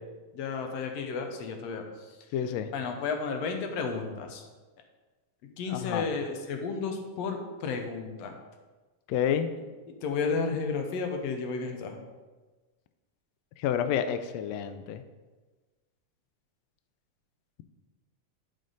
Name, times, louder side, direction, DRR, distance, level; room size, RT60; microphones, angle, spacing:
voice 1, 0.3-1.8 2.7-4.4 5.6-8.3 10.0-12.0, left 4 dB, 70° left, 4 dB, 1.7 m, -32 dB
voice 2, 2.3-2.7 5.7-6.1 9.1-9.5 13.6-15.0, left 9 dB, 85° left, 9 dB, 1.5 m, -29 dB
11.5 x 5.2 x 4.0 m, 1.3 s
omnidirectional pair, 3.6 m